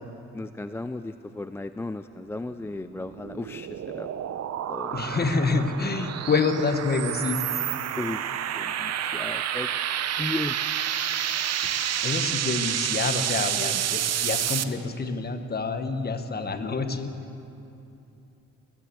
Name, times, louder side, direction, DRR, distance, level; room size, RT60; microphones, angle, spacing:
voice 1, 0.3-4.1 4.7-5.6 8.0-9.8 10.2-10.6, left 2 dB, 10° left, 10 dB, 0.3 m, -35 dB
sound 1, 2.9-14.6, right 10 dB, 55° right, 0.7 m, -29 dB
voice 2, 4.9-7.7 11.6-17.1, left 4 dB, 30° left, 7 dB, 1.3 m, -27 dB
19.0 x 9.9 x 7.6 m, 2.8 s
cardioid pair, 90°, 30 cm